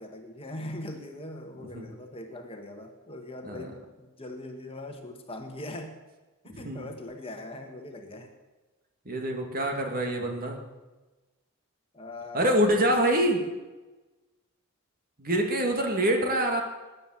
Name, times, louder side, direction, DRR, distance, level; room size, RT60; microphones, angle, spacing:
voice 1, 0.0-6.0 6.4-8.3 11.9-13.3, left 1 dB, 25° left, 4 dB, 1.6 m, -41 dB
voice 2, 6.5-6.9 9.1-10.6 12.3-13.4 15.2-16.6, right 1 dB, 40° right, 3 dB, 2.4 m, -25 dB
19.5 x 9.6 x 7.5 m, 1.2 s
head